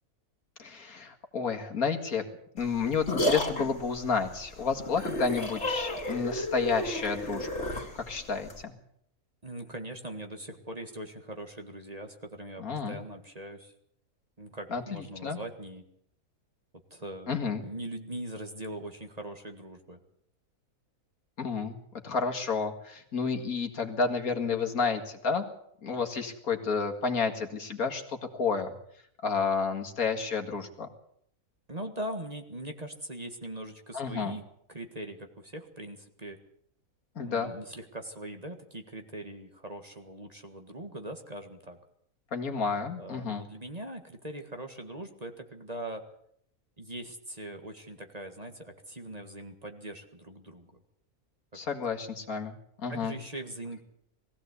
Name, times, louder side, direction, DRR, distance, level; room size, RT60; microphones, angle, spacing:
voice 1, 0.6-2.2 2.5-7.7 7.9-8.7 12.6-13.0 14.7-15.4 17.3-17.7 21.4-21.8 22.0-25.4 25.8-28.7 29.2-30.9 33.9-34.4 37.2-37.5 42.3-43.4 51.5-53.2, left 5 dB, 70° left, 4 dB, 2.4 m, -31 dB
sound 1, 2.6-8.6, equal, 45° left, 3.1 m, -32 dB
voice 2, 9.4-13.7 14.4-15.8 16.9-17.3 17.6-20.0 31.7-34.4 34.7-36.4 37.2-41.8 43.0-46.0 46.8-50.8 52.9-53.8, right 1 dB, 25° right, 5 dB, 1.8 m, -41 dB
21.0 x 15.5 x 8.2 m, 0.69 s
omnidirectional pair, 1.6 m